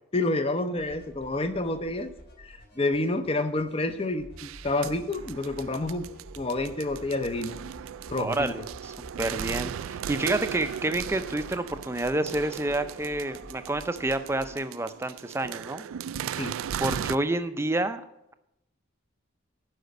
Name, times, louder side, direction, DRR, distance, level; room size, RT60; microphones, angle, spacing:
voice 1, 0.1-2.1 2.4-4.3 4.6-6.1 6.4-7.5 8.1-8.5 16.4-16.6, left 2 dB, 30° left, 10 dB, 0.6 m, -28 dB
sound 1, 0.8-14.5, equal, 50° left, 3.9 m, -50 dB
sound 2, 4.4-17.2, right 9 dB, 85° right, 0.3 m, -37 dB
voice 2, 8.1-15.8 16.8-18.0, right 2 dB, 10° right, 10 dB, 0.5 m, -29 dB
11.5 x 5.1 x 8.0 m, 0.86 s
head